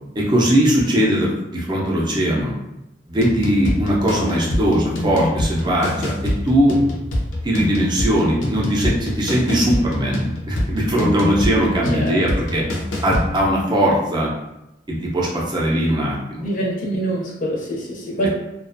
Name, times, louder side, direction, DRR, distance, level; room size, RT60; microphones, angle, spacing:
voice 1, 0.1-2.5 3.1-6.8 7.4-12.7 13.0-14.3 14.9-16.4 18.2-18.3, equal, 25° right, -4 dB, 0.5 m, -20 dB
sound 1, 3.2-13.5, left 1 dB, 85° left, 0.5 m, -25 dB
voice 2, 11.9-12.2 16.4-18.3, right 1 dB, 45° left, -2 dB, 0.6 m, -25 dB
2.4 x 2.3 x 2.4 m, 0.90 s
head